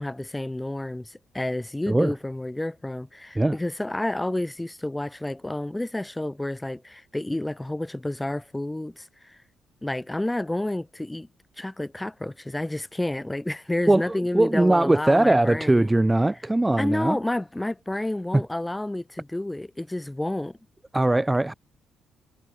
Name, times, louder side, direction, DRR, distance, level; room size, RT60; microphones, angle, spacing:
voice 1, 0.0-9.4 9.8-11.3 11.6-15.9 16.8-20.6, left 1 dB, 10° left, 5.4 m, -30 dB
voice 2, 13.9-17.2 18.3-18.4 20.9-21.5, right 2 dB, 10° right, 1.2 m, -20 dB
cardioid pair, 90°, 0 cm